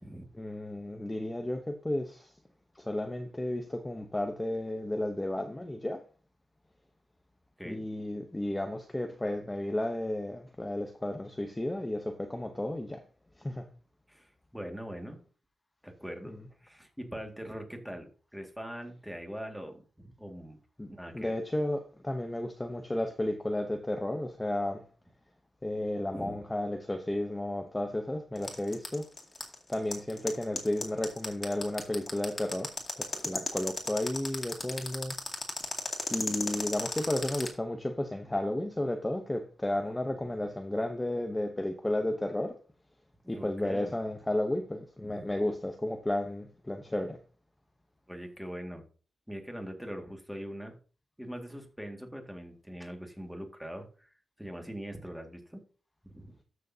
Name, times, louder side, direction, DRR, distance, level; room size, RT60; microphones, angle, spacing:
voice 1, 0.4-2.3 2.7-6.0 7.6-13.0 13.4-13.6 16.3-16.4 20.8-20.9 21.1-24.8 25.6-29.1 29.7-35.2 36.1-42.6 43.3-47.2, left 1 dB, 15° left, 0.9 m, -33 dB
voice 2, 14.1-15.2 15.8-16.4 16.6-20.6 20.9-21.3 26.1-26.4 40.0-40.2 43.2-43.9 45.0-45.3 48.1-48.8 49.3-50.7 51.2-55.6 56.0-56.3, equal, 5° right, 2.0 m, -42 dB
sound 1, 28.4-37.5, left 3 dB, 30° left, 2.3 m, -34 dB
13.5 x 6.5 x 2.8 m
wide cardioid pair, 100°, 0 cm